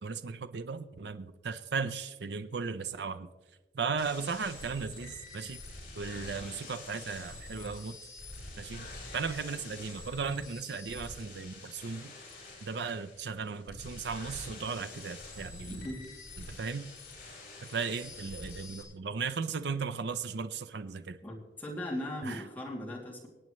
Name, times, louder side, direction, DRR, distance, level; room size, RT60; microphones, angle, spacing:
voice 1, 0.0-3.3 3.7-5.6 5.9-8.0 8.6-12.1 12.6-15.9 16.4-16.9 17.6-21.2 22.3-22.4, right 5 dB, 70° right, 11 dB, 0.5 m, -36 dB
sound 1, 4.0-18.8, left 2 dB, 50° left, 4.5 m, -46 dB
voice 2, 15.7-16.0 21.2-23.3, left 1 dB, 10° left, -4 dB, 2.6 m, -38 dB
25.5 x 8.7 x 3.1 m, 1.2 s
head